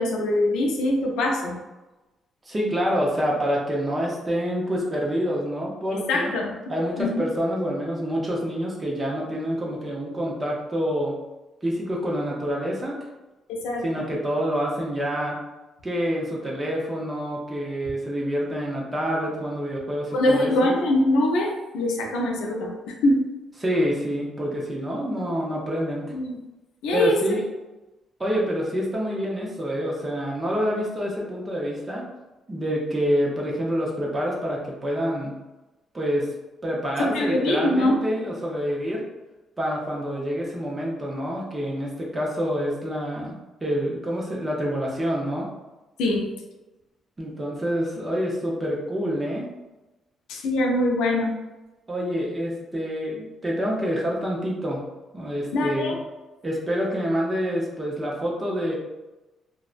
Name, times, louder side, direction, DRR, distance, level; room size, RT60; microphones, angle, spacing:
voice 1, 0.0-1.6 6.1-6.5 7.0-7.2 13.5-14.1 20.1-23.2 26.1-26.4 26.8-27.2 37.0-38.0 46.0-46.3 50.3-51.3 55.5-56.0, left 1 dB, 90° left, 0 dB, 0.4 m, -23 dB
voice 2, 2.5-6.3 6.7-11.1 11.6-13.0 13.8-15.4 15.8-20.7 23.6-26.1 26.9-27.4 28.2-32.0 32.5-35.3 35.9-36.3 36.6-39.0 39.6-43.3 43.6-45.5 47.2-49.5 51.9-54.8 55.1-56.0 56.4-58.7, equal, 25° right, -3 dB, 0.7 m, -27 dB
2.6 x 2.1 x 2.4 m, 1.1 s
cardioid pair, 90°, 0 cm